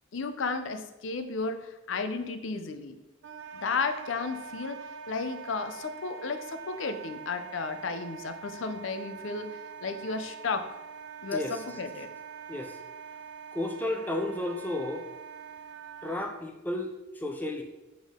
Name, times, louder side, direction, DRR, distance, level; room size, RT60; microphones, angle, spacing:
voice 1, 0.1-3.0 3.5-10.7 11.2-12.1, left 4 dB, 65° left, 8 dB, 0.5 m, -33 dB
Wind instrument woodwind instrument, 3.2-16.3, right 6 dB, 60° right, 0.4 m, -44 dB
voice 2, 11.3-11.6 12.5-12.8 13.5-15.1 16.0-17.6, left 1 dB, 10° left, 4 dB, 0.4 m, -33 dB
7.2 x 3.7 x 3.6 m, 1.0 s
head